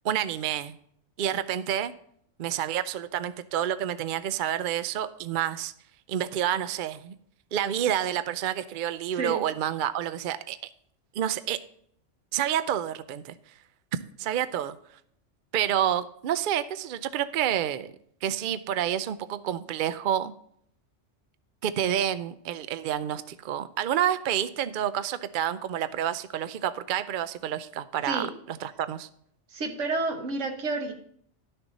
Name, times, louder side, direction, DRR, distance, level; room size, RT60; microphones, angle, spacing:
voice 1, 0.0-0.7 1.2-1.9 2.4-5.7 6.1-7.1 7.5-10.6 11.2-11.6 12.3-13.3 14.2-14.7 15.5-17.9 18.2-20.3 21.6-29.1, right 10 dB, 60° right, 13 dB, 0.6 m, -29 dB
voice 2, 9.1-9.4 28.0-28.3 29.5-30.9, right 3 dB, 80° right, 5 dB, 1.5 m, -30 dB
12.0 x 6.7 x 4.1 m, 0.65 s
omnidirectional pair, 1.2 m